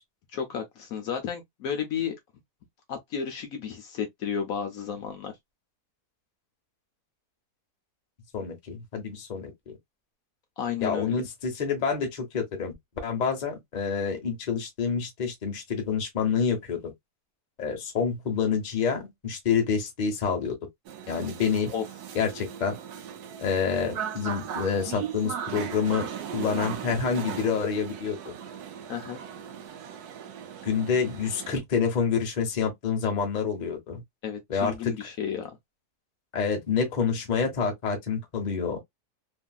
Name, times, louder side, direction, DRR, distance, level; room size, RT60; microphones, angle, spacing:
voice 1, 0.3-2.2 2.9-5.3 10.6-11.2 21.7-21.8 28.9-29.2 34.2-35.6, left 7 dB, 70° left, 1.0 m, -32 dB
voice 2, 8.3-9.7 10.8-12.7 13.0-16.9 17.6-20.5 21.1-21.7 22.1-22.8 23.4-28.3 30.6-34.0 34.5-34.9 36.3-38.8, left 6 dB, 35° left, 0.8 m, -28 dB
sound 1, 20.9-31.6, right 8 dB, 85° right, 1.1 m, -38 dB
2.9 x 2.6 x 2.2 m
omnidirectional pair, 1.6 m